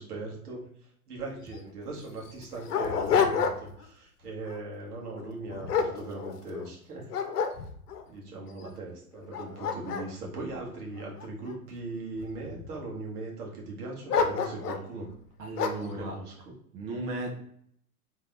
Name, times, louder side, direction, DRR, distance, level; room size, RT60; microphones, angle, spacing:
voice 1, 0.0-7.1 8.1-15.1 15.8-16.3, right 3 dB, 80° right, -1 dB, 1.8 m, -39 dB
Dog, 1.2-1.3 1.5-1.6 2.2-3.9 4.3-4.6 5.2-6.7 7.1-8.0 8.6-8.7 9.2-11.5 12.2-12.8 14.1-14.9 15.6-15.9, left 6 dB, 80° left, 0.8 m, -29 dB
voice 2, 15.4-16.2 16.7-17.3, right 2 dB, 60° right, 0 dB, 1.5 m, -35 dB
4.2 x 3.6 x 3.4 m, 0.67 s
hypercardioid pair, 100°, 45 cm